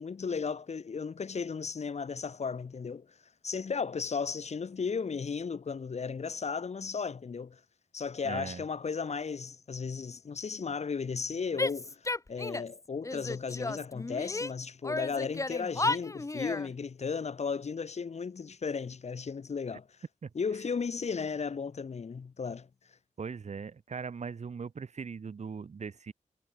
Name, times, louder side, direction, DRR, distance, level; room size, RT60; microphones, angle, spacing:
voice 1, 0.0-3.1 3.4-7.6 7.9-19.9 20.4-22.7, left 5 dB, 55° left, 3.5 m, -35 dB
voice 2, 8.2-8.6 20.2-20.3 23.2-26.1, right 5 dB, 60° right, 7.5 m, -39 dB
Female speech woman speaking / Yell, 11.6-12.8 13.0-14.5 14.8-16.7, left 2 dB, 25° left, 2.7 m, -33 dB
cardioid pair, 85°, 13 cm